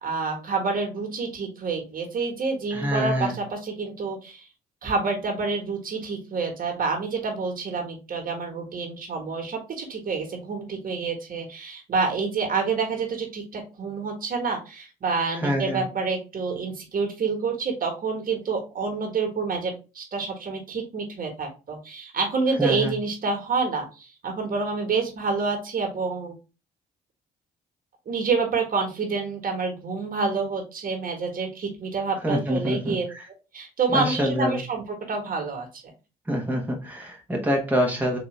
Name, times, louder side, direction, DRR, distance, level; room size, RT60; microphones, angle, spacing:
voice 1, 0.0-4.4 4.8-26.3 28.0-33.0 33.5-35.7, right 4 dB, 55° right, 2 dB, 1.6 m, -28 dB
voice 2, 2.7-3.3 15.4-15.8 22.6-22.9 32.2-33.2 33.9-34.6 36.3-38.2, equal, 10° right, 0 dB, 1.2 m, -26 dB
4.0 x 2.9 x 3.3 m, 0.31 s
supercardioid pair, 65°, 17 cm